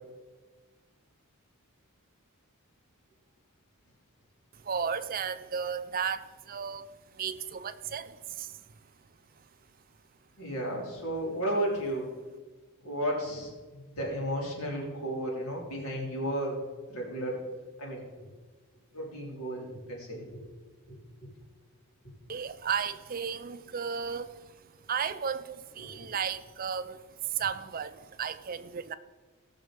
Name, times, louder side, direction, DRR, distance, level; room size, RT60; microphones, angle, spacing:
voice 1, 4.6-6.8 7.1-8.6 22.3-24.5 24.9-28.9, right 7 dB, 40° right, 13 dB, 0.5 m, -34 dB
voice 2, 10.4-12.1 12.8-16.6 16.9-17.4 17.8-18.3 18.9-20.4 20.9-21.0 25.9-26.0, right 1 dB, 80° left, -2 dB, 3.7 m, -33 dB
18.0 x 6.4 x 5.2 m, 1.4 s
head